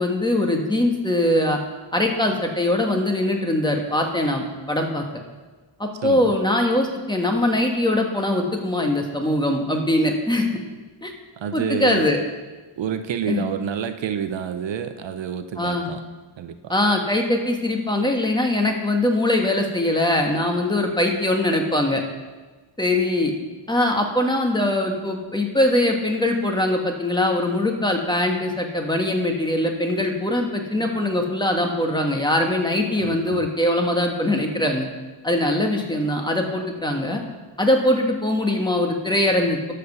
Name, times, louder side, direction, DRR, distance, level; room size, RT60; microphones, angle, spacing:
voice 1, 0.0-1.6 1.9-5.0 5.8-10.5 11.0-11.1 11.5-12.2 13.3-13.4 15.6-15.9 16.7-22.0 22.8-23.3 23.7-34.9 35.2-37.2 37.6-39.7, left 1 dB, 10° left, 2 dB, 1.4 m, -22 dB
voice 2, 6.0-6.3 11.4-12.1 12.8-16.0 16.4-16.7 33.0-33.5, right 8 dB, 70° right, 9 dB, 0.8 m, -29 dB
12.5 x 5.1 x 6.7 m, 1.3 s
wide cardioid pair, 120°, 46 cm